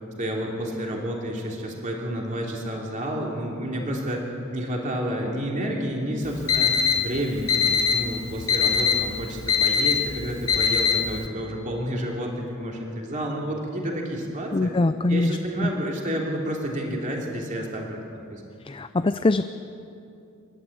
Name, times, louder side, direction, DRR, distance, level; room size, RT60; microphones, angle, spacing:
voice 1, 0.2-14.7 15.1-18.0 18.3-18.4, equal, 35° right, -1 dB, 3.1 m, -30 dB
Alarm, 6.2-11.3, left 7 dB, 85° left, 1.8 m, -23 dB
voice 2, 14.5-15.7 18.6-19.5, left 2 dB, 25° left, 10 dB, 0.4 m, -23 dB
29.0 x 12.0 x 8.7 m, 2.7 s
head